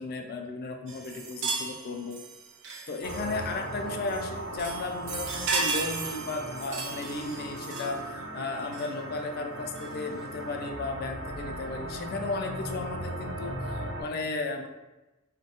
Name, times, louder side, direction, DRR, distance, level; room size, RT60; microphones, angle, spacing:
voice 1, 0.0-2.2 2.9-14.7, left 3 dB, 45° left, 4 dB, 0.3 m, -35 dB
sound 1, 0.9-3.5 4.1-4.3 4.6-8.1 8.7-8.9 9.8-9.9, right 4 dB, 55° right, 0.4 m, -35 dB
sound 2, 3.0-14.0, right 1 dB, 90° right, 0.7 m, -38 dB
3.2 x 2.2 x 2.7 m, 1.1 s
head